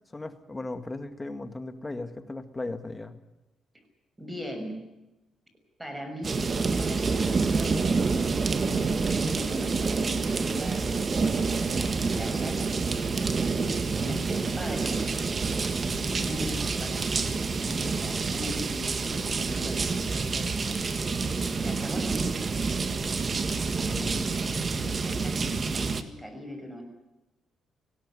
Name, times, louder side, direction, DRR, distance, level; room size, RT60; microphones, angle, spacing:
voice 1, 0.1-3.2 23.8-24.3, left 2 dB, 20° left, 10 dB, 2.0 m, -37 dB
voice 2, 4.2-4.8 5.8-6.4 6.7-8.0 8.6-8.9 9.2-12.6 13.4-15.0 15.9-20.8 21.6-22.7 24.6-26.8, equal, 10° right, 6 dB, 6.2 m, -40 dB
sound 1, 6.2-26.0, right 4 dB, 35° right, 1.7 m, -28 dB
19.0 x 17.0 x 9.9 m, 0.98 s
cardioid pair, 90°, 0 cm